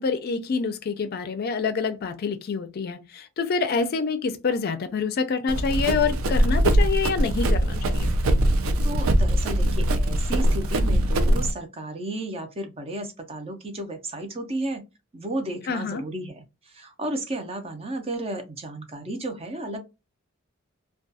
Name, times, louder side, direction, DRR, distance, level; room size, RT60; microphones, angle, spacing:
voice 1, 0.0-8.1 15.7-16.0, left 5 dB, 50° left, 0.4 m, -27 dB
Run, 5.5-11.5, right 1 dB, 85° right, 0.4 m, -22 dB
voice 2, 8.8-14.8 15.1-19.8, right 1 dB, 30° right, 0.5 m, -33 dB
2.3 x 2.2 x 2.6 m
head